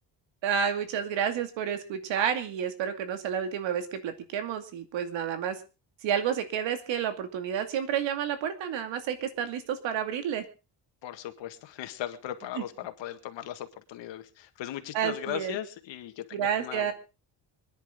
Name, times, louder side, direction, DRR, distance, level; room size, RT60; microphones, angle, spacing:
voice 1, 0.4-5.6 6.0-10.4 12.6-12.7 14.9-15.6 16.3-16.9, right 8 dB, 85° right, 8 dB, 2.5 m, -30 dB
voice 2, 11.0-16.9, left 12 dB, 80° left, 8 dB, 2.0 m, -38 dB
25.5 x 10.5 x 3.8 m, 0.31 s
cardioid pair, 160°, 44 cm